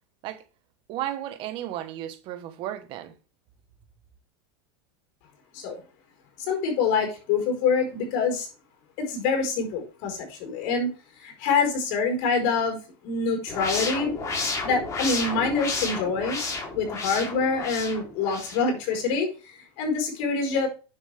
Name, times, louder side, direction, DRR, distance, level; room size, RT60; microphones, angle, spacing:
voice 1, 0.9-3.1, right 12 dB, 45° right, 1.2 m, -34 dB
voice 2, 6.4-8.5 9.0-10.9 11.2-12.8 13.0-14.1 14.6-16.4 16.7-20.7, left 4 dB, 60° left, 4.6 m, -26 dB
sound 1, 13.5-18.6, left 3 dB, 25° left, 3.4 m, -31 dB
9.8 x 7.2 x 3.5 m
supercardioid pair, 140°, 12 cm